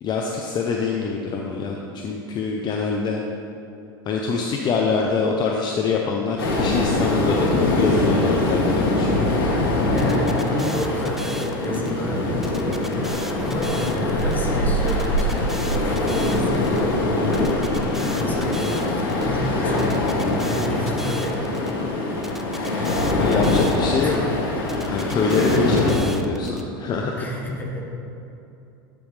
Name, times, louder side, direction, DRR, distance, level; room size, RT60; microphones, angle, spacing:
voice 1, 0.0-3.2 4.1-9.3 23.2-24.3 24.9-27.2, left 4 dB, 40° left, 0 dB, 0.6 m, -25 dB
sound 1, 6.4-26.0, left 2 dB, 80° left, 1.3 m, -23 dB
voice 2, 9.9-17.6 18.1-22.0 24.0-24.2 27.2-27.8, left 1 dB, 15° left, -2 dB, 1.4 m, -31 dB
sound 2, 10.0-11.9 12.4-14.4 14.9-16.8 17.3-19.3 19.8-21.7 22.2-24.2 24.7-26.6, right 1 dB, 5° right, 0.4 m, -37 dB
8.5 x 5.2 x 3.2 m, 2.8 s
hypercardioid pair, 100°, 12 cm